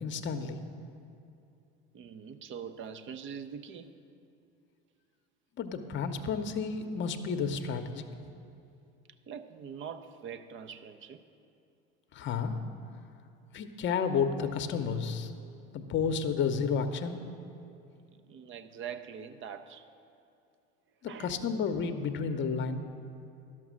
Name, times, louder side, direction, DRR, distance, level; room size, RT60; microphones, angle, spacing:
voice 1, 0.0-0.6 5.6-8.0 12.1-12.6 13.5-15.3 15.7-17.2 21.0-22.8, left 6 dB, 40° left, 8 dB, 0.8 m, -31 dB
voice 2, 1.9-4.0 9.3-11.2 18.1-19.9 21.0-21.4, right 7 dB, 40° right, 11 dB, 0.7 m, -43 dB
11.5 x 6.0 x 6.2 m, 2.6 s
hypercardioid pair, 80°, 30 cm